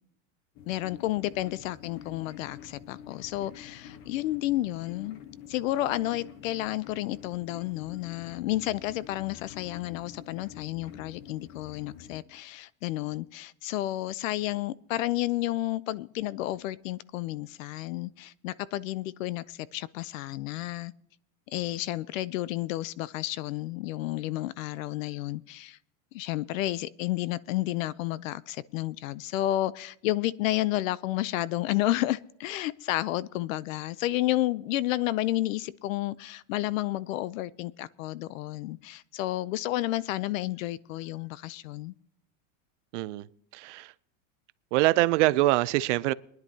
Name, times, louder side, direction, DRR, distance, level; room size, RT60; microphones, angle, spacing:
sound 1, 0.6-12.2, left 9 dB, 35° left, 0.9 m, -48 dB
voice 1, 0.7-5.2 5.5-20.9 21.5-25.8 26.1-41.9, left 15 dB, 80° left, 0.7 m, -31 dB
voice 2, 42.9-43.3 43.5-43.9 44.7-46.1, right 18 dB, 65° right, 0.6 m, -24 dB
22.0 x 10.5 x 2.8 m
supercardioid pair, 165°, 39 cm